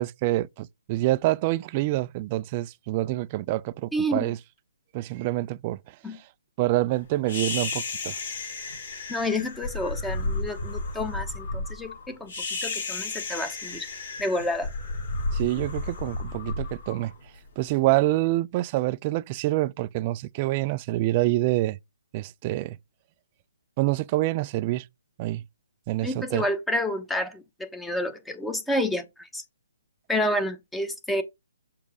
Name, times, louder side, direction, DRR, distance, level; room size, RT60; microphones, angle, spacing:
voice 1, 0.0-4.4 4.9-5.8 6.6-8.1 15.3-17.1 17.6-21.8 22.1-22.8 23.8-24.8 25.2-25.4 25.9-26.4, right 17 dB, 30° right, 0.4 m, -26 dB
voice 2, 3.9-4.3 6.0-6.2 9.1-13.9 14.2-14.7 26.0-29.4 30.1-31.2, left 1 dB, 5° left, 1.0 m, -29 dB
sound 1, 7.3-17.6, left 2 dB, 65° left, 4.4 m, -33 dB
7.2 x 4.8 x 3.5 m
figure-of-eight pair, 140°, 0 cm